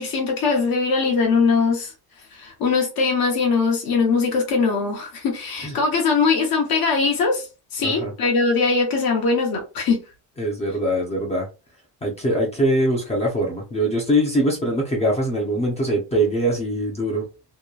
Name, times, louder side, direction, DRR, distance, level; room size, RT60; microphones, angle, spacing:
voice 1, 0.0-1.9 2.3-7.5 7.7-10.0, left 4 dB, 50° left, 0.9 m, -21 dB
voice 2, 10.4-11.5 12.0-17.3, equal, 15° left, 0.6 m, -22 dB
2.9 x 2.2 x 2.3 m
cardioid pair, 155°, 44 cm